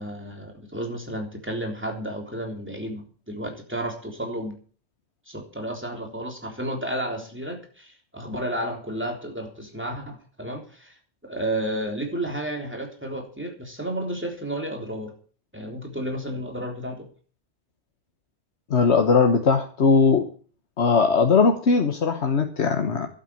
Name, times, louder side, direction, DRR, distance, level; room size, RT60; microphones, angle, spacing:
voice 1, 0.0-4.6 5.3-10.9 11.2-15.1 15.5-17.1, right 1 dB, 10° right, 3 dB, 3.6 m, -32 dB
voice 2, 18.7-20.3 20.8-23.1, left 5 dB, 90° left, 6 dB, 1.5 m, -19 dB
11.5 x 8.7 x 8.9 m, 0.41 s
omnidirectional pair, 1.1 m